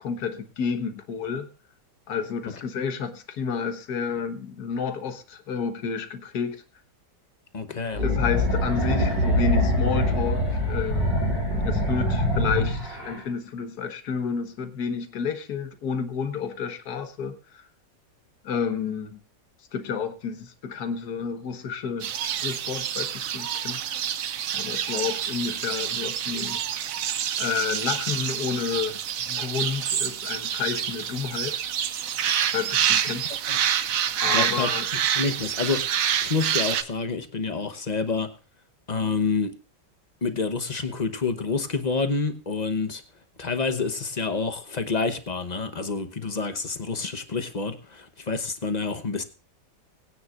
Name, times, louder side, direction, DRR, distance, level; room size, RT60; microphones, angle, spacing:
voice 1, 0.0-1.5 2.1-6.6 8.0-11.2 11.6-17.7 18.4-19.2 19.7-23.8 24.5-26.6 27.4-31.6 32.5-33.3 34.2-34.9, left 6 dB, 60° left, 7 dB, 1.7 m, -30 dB
voice 2, 7.5-8.0 33.5-33.6 34.3-34.7 35.1-38.3 38.9-39.5 40.2-43.0 43.4-49.2, left 4 dB, 30° left, 8 dB, 0.8 m, -28 dB
sound 1, 7.9-13.2, left 1 dB, 85° right, 6.9 m, -24 dB
sound 2, 22.0-36.8, right 9 dB, 60° right, 1.0 m, -27 dB
21.0 x 9.5 x 2.4 m, 0.33 s
omnidirectional pair, 1.9 m